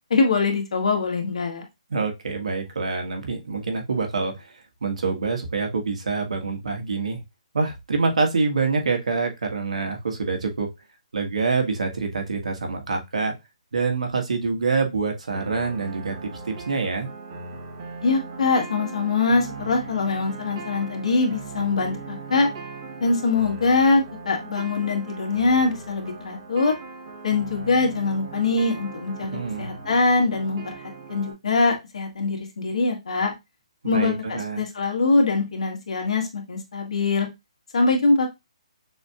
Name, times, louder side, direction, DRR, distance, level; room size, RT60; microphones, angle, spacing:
voice 1, 0.1-1.6 18.0-22.5 23.0-26.8 27.2-30.7 31.1-33.3 33.8-37.3 37.7-38.3, left 3 dB, 70° left, 2 dB, 1.7 m, -23 dB
voice 2, 1.9-7.2 7.5-10.7 11.1-13.3 13.7-17.1 29.2-29.7 33.8-34.6, right 4 dB, 80° right, 2 dB, 1.6 m, -26 dB
sound 1, 15.3-31.3, right 4 dB, 35° right, 1.2 m, -39 dB
6.2 x 2.8 x 2.4 m, 0.21 s
hypercardioid pair, 160°, 4 cm